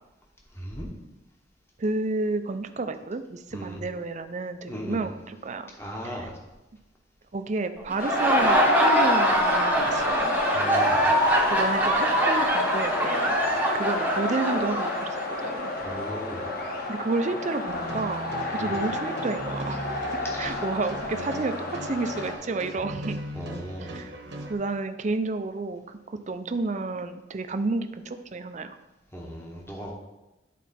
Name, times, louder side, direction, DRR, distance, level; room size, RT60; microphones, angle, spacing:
voice 1, 0.5-0.9 3.5-3.8 4.7-5.0 5.8-6.3 10.5-11.1 15.8-16.5 18.6-18.8 20.2-20.6 23.3-24.0 29.1-29.9, equal, 15° left, -1 dB, 1.1 m, -37 dB
voice 2, 1.8-5.7 6.0-6.3 7.3-10.4 11.5-13.4 13.7-15.7 16.9-23.2 23.8-24.1 24.5-28.8, right 3 dB, 40° right, 9 dB, 0.5 m, -31 dB
Laughter, 7.9-15.5, right 1 dB, 10° right, 0.9 m, -24 dB
sound 1, 8.0-22.3, left 1 dB, 55° left, 1.1 m, -30 dB
sound 2, 17.7-24.5, right 1 dB, 70° right, 1.1 m, -38 dB
11.0 x 4.1 x 4.2 m, 1.0 s
head